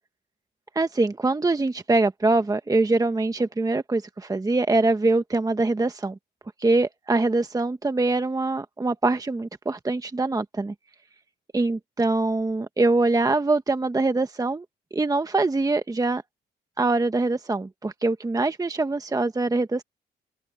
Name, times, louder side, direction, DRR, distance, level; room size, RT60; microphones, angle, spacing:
voice 1, 0.7-6.2 6.6-10.7 11.5-14.6 14.9-16.2 16.8-19.8, right 2 dB, 20° right, 1.1 m, -23 dB
open air
cardioid pair, 90°, 20 cm